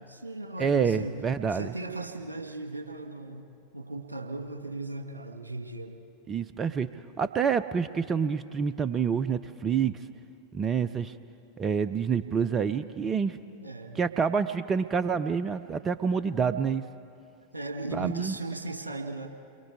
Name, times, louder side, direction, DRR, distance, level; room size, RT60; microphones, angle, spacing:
voice 1, 0.0-6.0 13.5-14.0 17.5-19.3, right 2 dB, 80° right, 4 dB, 1.6 m, -37 dB
voice 2, 0.6-1.7 6.3-6.9 7.2-9.9 10.5-11.1 11.6-13.4 14.0-16.8 17.9-18.3, right 6 dB, 25° right, 13 dB, 0.5 m, -27 dB
29.0 x 23.0 x 4.8 m, 2.5 s
figure-of-eight pair, 90°, 0 cm